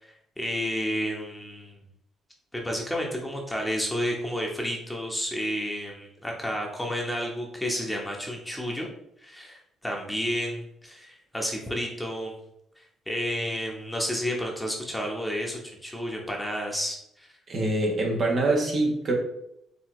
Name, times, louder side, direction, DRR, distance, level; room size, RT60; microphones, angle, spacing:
voice 1, 0.0-1.8 2.5-8.9 9.2-12.4 12.8-17.3, equal, 5° left, -1 dB, 1.2 m, -31 dB
voice 2, 17.5-19.1, right 2 dB, 50° right, 0 dB, 1.3 m, -24 dB
4.7 x 3.3 x 3.2 m, 0.76 s
supercardioid pair, 60°, 0 cm